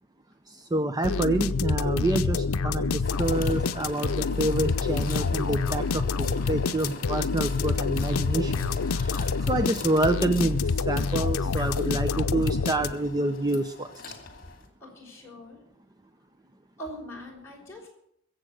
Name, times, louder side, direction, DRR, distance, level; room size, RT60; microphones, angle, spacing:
voice 1, 0.5-13.9, right 2 dB, 20° right, 9 dB, 0.5 m, -28 dB
sound 1, 1.0-13.2, left 4 dB, 90° left, 0.6 m, -27 dB
sound 2, 3.0-14.7, left 3 dB, 45° left, 2.6 m, -43 dB
sound 3, 10.7-10.8 11.1-12.0 12.3-13.3, left 1 dB, 65° right, 2.2 m, -48 dB
voice 2, 14.8-15.6 16.8-17.9, equal, 10° left, -3 dB, 5.2 m, -42 dB
22.0 x 7.8 x 6.4 m, 0.73 s
head